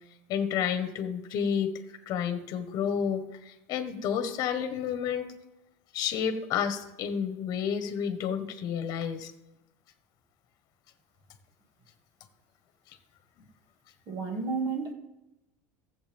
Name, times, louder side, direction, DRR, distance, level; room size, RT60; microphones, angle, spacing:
voice 1, 0.3-5.3 5.9-9.3, left 8 dB, 40° left, 8 dB, 1.4 m, -30 dB
voice 2, 14.1-14.9, right 4 dB, 40° right, 3 dB, 2.3 m, -31 dB
15.0 x 7.5 x 3.6 m, 0.92 s
supercardioid pair, 135°, 9 cm